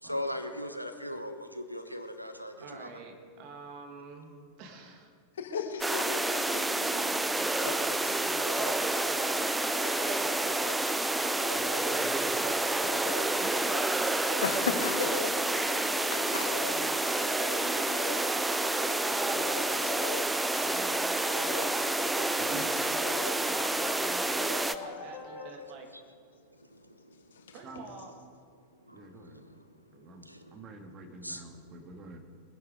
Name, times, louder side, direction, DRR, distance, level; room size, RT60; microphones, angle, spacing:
voice 1, 0.0-2.9 26.6-27.2 28.9-29.6 30.2-30.6 31.2-31.4, left 1 dB, 90° right, 9 dB, 0.9 m, -39 dB
voice 2, 2.6-5.1 6.8-7.7 8.1-11.4 13.4-15.2 15.8-18.5 19.1-21.0 21.4-25.9 27.5-28.1, right 4 dB, 40° right, 4 dB, 2.5 m, -47 dB
voice 3, 5.4-7.0 7.6-7.8 14.4-15.3 16.3-16.5 19.1-19.4 21.4-21.7, left 5 dB, 65° left, 6 dB, 1.6 m, -35 dB
sound 1, 5.8-24.8, right 2 dB, 5° right, 0.6 m, -29 dB
sound 2, 8.1-25.6, left 3 dB, 20° left, 3.7 m, -41 dB
voice 4, 11.5-13.2 22.4-22.6 27.6-27.8 28.9-29.4 29.9-32.2, right 3 dB, 25° right, 4 dB, 2.1 m, -46 dB
22.5 x 10.5 x 5.1 m, 2.1 s
figure-of-eight pair, 90°, 0 cm